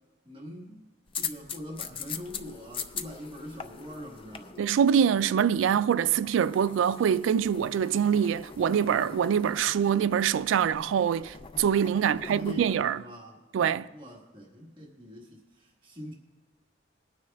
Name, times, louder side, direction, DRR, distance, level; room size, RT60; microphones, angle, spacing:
voice 1, 0.2-0.8 1.1-5.1 12.0-13.4 13.9-16.1, left 1 dB, 30° right, 1.5 m, -43 dB
sound 1, 1.1-12.9, left 6 dB, 30° left, 0.4 m, -42 dB
voice 2, 4.6-13.0 13.5-13.9, right 8 dB, 90° right, 0.3 m, -24 dB
21.5 x 9.5 x 2.3 m
head